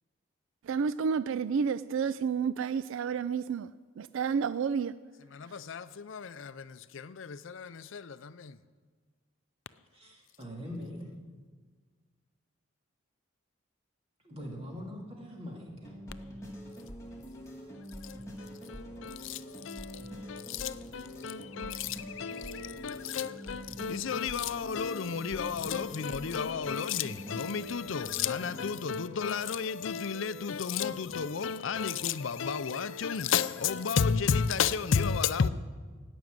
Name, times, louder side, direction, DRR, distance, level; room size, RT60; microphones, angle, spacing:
voice 1, 0.7-3.7 4.0-4.9, right 6 dB, 70° right, 0.3 m, -30 dB
voice 2, 5.3-8.6 18.0-35.5, left 6 dB, 65° left, 0.5 m, -32 dB
voice 3, 9.9-11.1 14.2-16.0, equal, 30° right, 2.7 m, -42 dB
sound 1, 15.8-28.8, equal, 15° left, 2.0 m, -45 dB
17.0 x 6.2 x 9.3 m
head